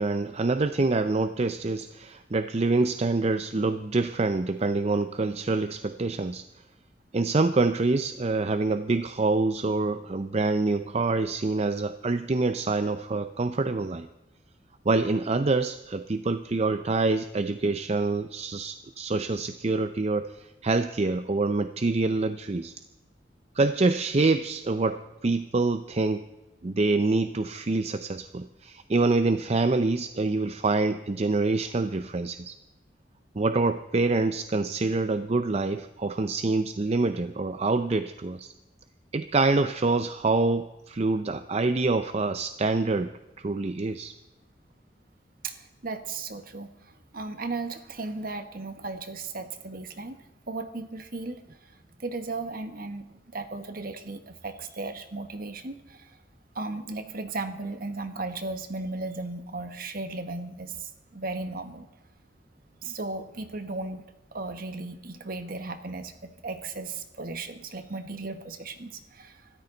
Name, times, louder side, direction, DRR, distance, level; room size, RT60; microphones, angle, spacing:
voice 1, 0.0-6.5 7.1-14.1 14.9-22.7 23.6-26.2 26.6-32.5 33.4-38.5 39.1-43.1 43.4-44.1, right 3 dB, 35° right, 10 dB, 0.5 m, -26 dB
voice 2, 45.4-50.2 50.5-51.4 52.0-56.2 56.5-61.9 62.8-64.0 64.3-69.5, right 3 dB, 55° right, 8 dB, 1.5 m, -36 dB
25.5 x 13.5 x 4.0 m, 1.0 s
head